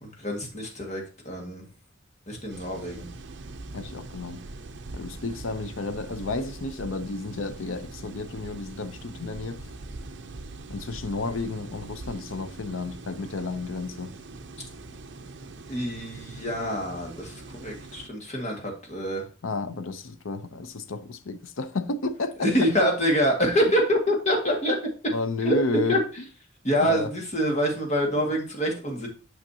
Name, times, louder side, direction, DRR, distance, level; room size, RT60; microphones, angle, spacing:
voice 1, 0.0-1.7 2.3-3.1 15.7-19.2 22.4-24.8 25.4-25.6 25.9-26.0 26.6-29.1, equal, 35° left, 1.8 m, -26 dB
sound 1, 2.5-18.1, right 2 dB, 60° right, 0.6 m, -42 dB
voice 2, 3.7-4.4 4.9-9.7 10.7-14.1 19.4-22.9 25.1-26.0 26.8-27.1, left 3 dB, 85° left, 0.6 m, -32 dB
8.8 x 5.8 x 2.8 m
head